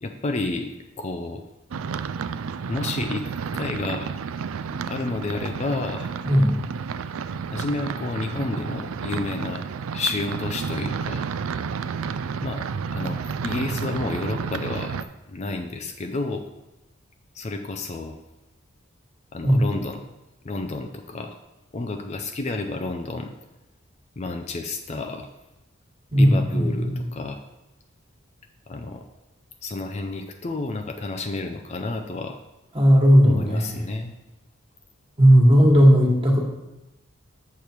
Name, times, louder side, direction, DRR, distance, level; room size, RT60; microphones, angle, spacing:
voice 1, 0.0-1.4 2.7-4.1 4.9-6.1 7.5-9.6 9.9-11.3 12.4-15.0 15.3-16.4 17.3-18.2 19.3-20.0 20.4-21.4 21.7-23.3 24.2-25.3 26.1-27.4 28.7-29.0 29.6-32.4 33.2-34.1 35.7-35.9, left 2 dB, 30° left, 5 dB, 0.5 m, -30 dB
sound 1, 1.7-15.0, right 6 dB, 75° right, 0.4 m, -31 dB
voice 2, 6.2-6.6 19.4-19.6 26.1-27.0 32.7-33.7 35.2-36.4, equal, 25° right, -1 dB, 1.6 m, -16 dB
6.9 x 6.6 x 4.5 m, 0.98 s
head